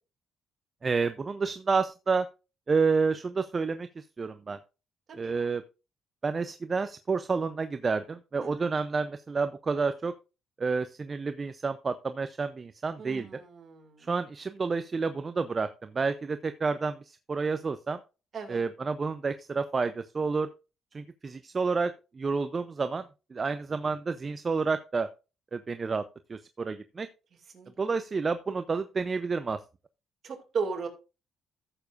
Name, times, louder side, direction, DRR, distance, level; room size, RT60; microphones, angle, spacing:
voice 1, 0.8-2.3 2.7-4.6 5.2-5.6 6.2-10.1 10.6-13.3 14.1-18.0 18.5-20.5 20.9-23.0 23.3-25.1 25.5-26.0 26.3-27.1 27.8-29.6, right 4 dB, 35° right, 10 dB, 0.5 m, -29 dB
voice 2, 13.0-14.1 18.3-18.6 27.5-27.7 30.2-30.9, right 5 dB, 55° right, 4 dB, 2.4 m, -36 dB
14.0 x 7.0 x 2.5 m, 0.31 s
cardioid pair, 90°, 0 cm